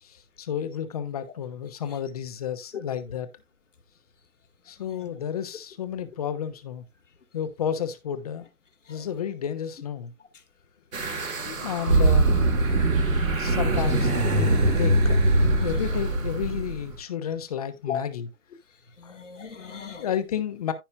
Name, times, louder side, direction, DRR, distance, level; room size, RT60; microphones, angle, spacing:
voice 1, 0.0-3.3 4.6-6.8 7.3-8.5 8.9-10.1 11.4-12.3 13.4-18.3 19.0-19.2 20.0-20.7, left 9 dB, 25° left, 1.0 m, -31 dB
voice 2, 4.8-5.1 8.9-9.1 11.9-12.0 12.6-13.2 15.6-15.9 17.8-18.0 19.0-20.1, left 7 dB, 60° left, 2.2 m, -38 dB
sound 1, 10.9-16.9, right 2 dB, 70° right, 3.0 m, -22 dB
15.0 x 5.5 x 2.4 m
figure-of-eight pair, 140°, 43 cm